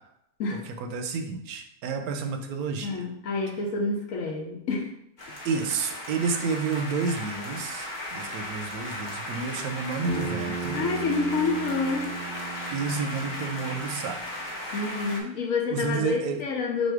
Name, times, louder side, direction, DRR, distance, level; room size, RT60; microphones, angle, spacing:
voice 1, 0.8-3.0 5.4-10.8 12.7-14.2 15.7-16.4, right 5 dB, 75° right, 5 dB, 1.0 m, -30 dB
voice 2, 2.8-4.9 10.7-12.1 14.7-16.9, left 4 dB, 65° left, 1 dB, 1.1 m, -28 dB
sound 1, 5.2-15.2, left 1 dB, 40° left, 0.8 m, -36 dB
Bass guitar, 10.1-14.4, right 5 dB, 55° right, 0.5 m, -36 dB
4.1 x 2.7 x 4.5 m, 0.78 s
omnidirectional pair, 1.6 m